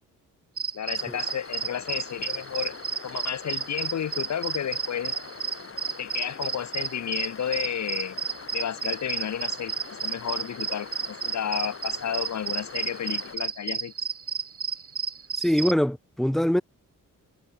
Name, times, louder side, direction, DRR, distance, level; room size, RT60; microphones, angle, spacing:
sound 1, 0.6-15.7, right 6 dB, 45° right, 2.3 m, -32 dB
voice 1, 0.7-2.7 3.0-5.1 6.0-8.2 8.5-9.7 10.0-13.9, left 9 dB, 55° left, 1.1 m, -32 dB
sound 2, 1.0-13.4, left 5 dB, 40° left, 4.2 m, -43 dB
voice 2, 15.4-16.6, equal, ahead, 0.6 m, -23 dB
wide cardioid pair, 140°, 33 cm